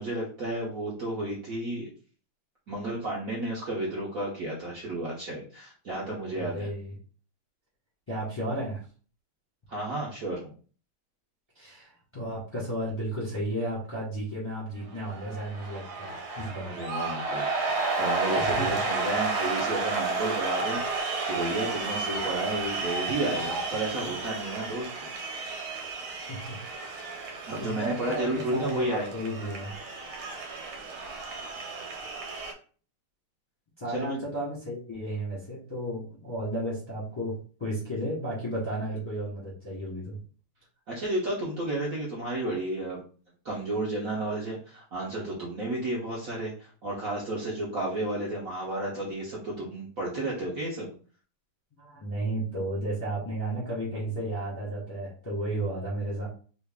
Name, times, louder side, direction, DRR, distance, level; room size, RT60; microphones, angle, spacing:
voice 1, 0.0-1.9 2.7-6.7 9.7-10.4 16.6-25.4 27.5-29.1 33.9-34.2 40.9-43.0 43.4-50.9, right 1 dB, 60° right, -5 dB, 0.9 m, -32 dB
voice 2, 6.3-6.9 8.1-8.8 11.5-16.7 18.3-18.7 26.3-26.6 27.6-29.7 33.8-40.2 51.7-56.3, right 1 dB, 20° left, -7 dB, 0.9 m, -33 dB
sound 1, 14.9-32.5, right 3 dB, 85° right, 1.6 m, -32 dB
3.1 x 2.5 x 3.5 m, 0.41 s
omnidirectional pair, 2.3 m